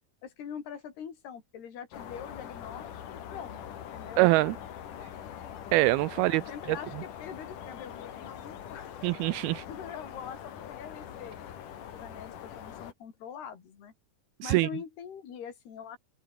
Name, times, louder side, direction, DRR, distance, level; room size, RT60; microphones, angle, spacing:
voice 1, 0.2-4.3 6.3-8.9 9.7-11.4 11.9-13.9 14.4-16.0, left 8 dB, 70° left, 5.8 m, -43 dB
sound 1, 1.9-12.9, left 9 dB, 55° left, 3.3 m, -43 dB
voice 2, 4.2-4.6 5.7-6.4 6.7-6.8 9.0-9.6 14.4-14.7, right 20 dB, 85° right, 2.2 m, -24 dB
omnidirectional pair, 4.8 m